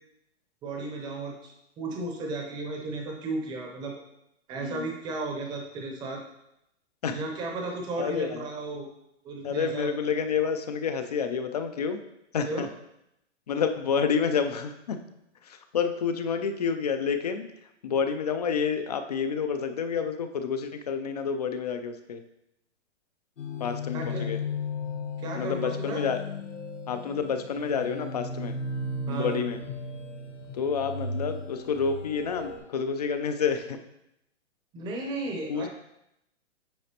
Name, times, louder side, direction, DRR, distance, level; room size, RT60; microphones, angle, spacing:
voice 1, 0.6-3.9 4.5-6.2 7.1-8.9 9.2-9.9 12.5-12.6 23.9-24.3 25.2-26.0 29.1-29.4 34.7-35.7, right 3 dB, 10° right, 1 dB, 0.6 m, -34 dB
voice 2, 8.0-8.4 9.4-12.0 12.3-12.7 13.5-15.0 15.4-17.5 17.8-22.2 23.6-24.4 25.3-26.2 26.9-28.5 29.1-29.6 30.5-33.8 35.5-35.7, left 6 dB, 35° left, 8 dB, 0.4 m, -29 dB
sound 1, 23.4-32.6, left 2 dB, 90° left, 1.3 m, -35 dB
8.4 x 4.8 x 2.9 m, 0.83 s
hypercardioid pair, 155°, 37 cm